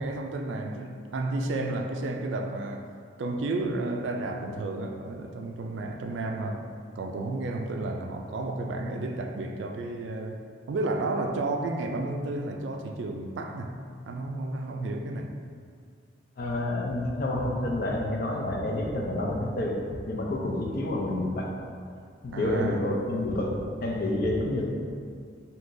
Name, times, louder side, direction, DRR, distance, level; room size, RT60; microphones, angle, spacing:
voice 1, 0.0-2.9 3.2-6.6 7.0-10.4 10.7-15.4 22.3-22.8, right 2 dB, 70° right, 3 dB, 0.3 m, -32 dB
voice 2, 16.4-21.5 22.2-24.7, left 1 dB, 50° left, -1 dB, 0.5 m, -29 dB
3.7 x 2.8 x 2.6 m, 2.2 s
head